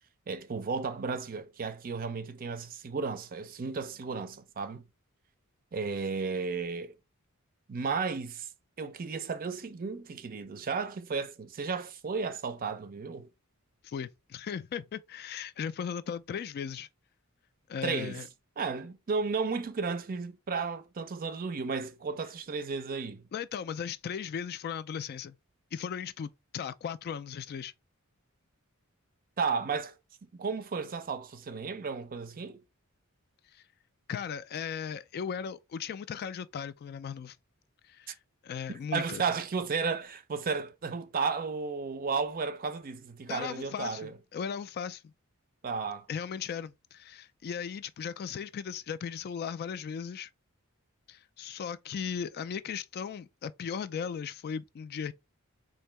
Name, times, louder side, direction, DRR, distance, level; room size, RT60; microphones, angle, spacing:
voice 1, 0.3-4.8 5.7-6.9 7.7-8.5 8.8-13.3 17.8-18.2 18.6-23.3 29.4-29.9 30.2-32.6 38.7-44.2 45.6-46.1, right 5 dB, 40° right, 0.5 m, -33 dB
voice 2, 13.8-16.9 17.7-18.3 23.3-25.4 25.7-27.7 33.5-33.6 34.1-37.4 37.9-38.2 38.4-39.2 43.3-45.1 46.1-50.3 51.1-55.1, left 7 dB, 45° left, 0.3 m, -37 dB
3.8 x 2.7 x 3.2 m
head